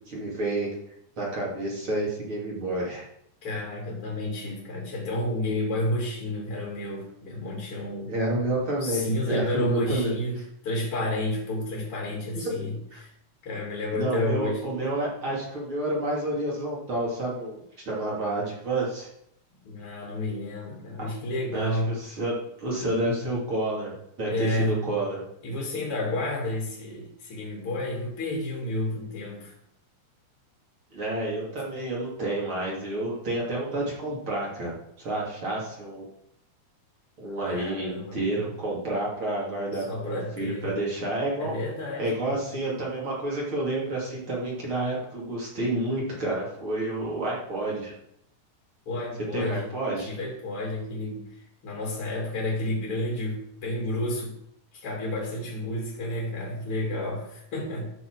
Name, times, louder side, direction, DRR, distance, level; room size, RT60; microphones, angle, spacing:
voice 1, 0.1-0.7 1.2-3.1 8.1-10.2 12.3-12.5 12.9-13.0 13.9-19.1 21.5-25.2 30.9-34.7 35.0-36.1 37.2-41.6 42.0-47.9 49.3-50.2, right 1 dB, 35° right, -4 dB, 2.9 m, -29 dB
voice 2, 3.4-8.1 8.8-13.1 13.4-14.6 19.6-22.0 24.3-24.9 25.4-29.5 37.4-38.5 39.9-40.7 41.4-42.4 48.9-54.4 54.7-57.9, left 1 dB, 40° left, -2 dB, 2.7 m, -31 dB
13.5 x 6.6 x 4.7 m, 0.76 s
omnidirectional pair, 4.8 m